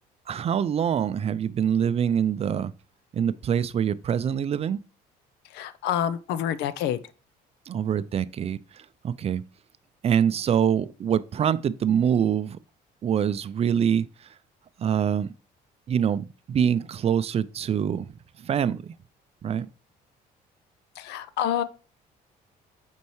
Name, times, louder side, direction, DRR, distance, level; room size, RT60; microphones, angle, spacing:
voice 1, 0.3-2.7 3.1-4.8 7.7-8.6 9.0-9.4 10.0-12.6 13.0-14.1 14.8-15.3 15.9-18.1 18.4-18.9 19.4-19.7, right 8 dB, 40° right, 0.4 m, -24 dB
voice 2, 5.5-7.0 21.0-21.6, left 10 dB, 85° left, 0.6 m, -27 dB
8.4 x 4.5 x 3.1 m
cardioid pair, 110°, 17 cm